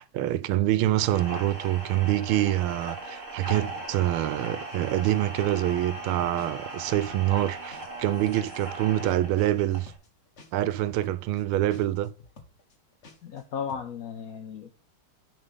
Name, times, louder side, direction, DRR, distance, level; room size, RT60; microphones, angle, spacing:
voice 1, 0.0-9.9 10.5-12.1, right 14 dB, 85° right, 1.5 m, -26 dB
sound 1, 1.0-9.9, right 2 dB, 35° right, 2.8 m, -38 dB
sound 2, 4.7-4.8 5.0-8.1 8.4-13.4 13.7-13.9, left 3 dB, 40° left, 1.4 m, -51 dB
voice 2, 13.2-14.7, left 7 dB, 75° left, 0.8 m, -35 dB
10.0 x 3.9 x 5.3 m
omnidirectional pair, 2.3 m